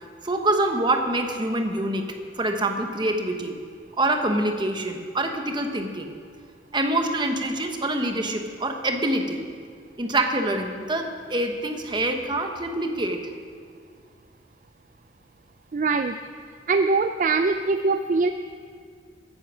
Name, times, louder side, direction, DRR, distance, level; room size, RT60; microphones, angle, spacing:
voice 1, 0.2-2.0 2.4-3.5 4.0-6.1 6.7-9.5 10.0-13.2, right 1 dB, 25° right, 5 dB, 1.1 m, -25 dB
voice 2, 15.7-16.2 16.7-18.3, right 4 dB, 45° right, 8 dB, 0.4 m, -22 dB
14.5 x 9.9 x 6.1 m, 2.2 s
head